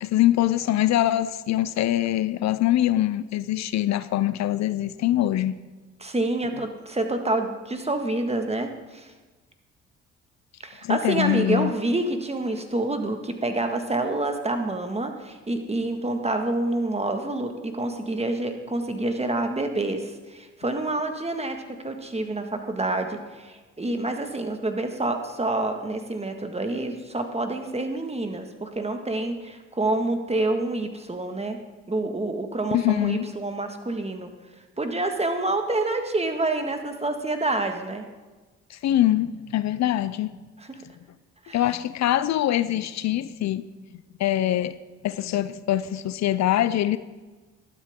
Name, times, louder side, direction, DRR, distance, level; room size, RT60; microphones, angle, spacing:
voice 1, 0.0-5.5 10.8-11.7 32.7-33.3 38.7-40.3 41.5-43.7 44.2-44.8 45.0-47.0, left 13 dB, 70° left, 0.6 m, -23 dB
voice 2, 6.0-9.1 10.6-31.6 31.9-34.3 34.8-38.1 40.6-40.8 41.5-41.6, right 2 dB, 20° right, 1.8 m, -27 dB
13.0 x 12.0 x 3.7 m
supercardioid pair, 65°, 29 cm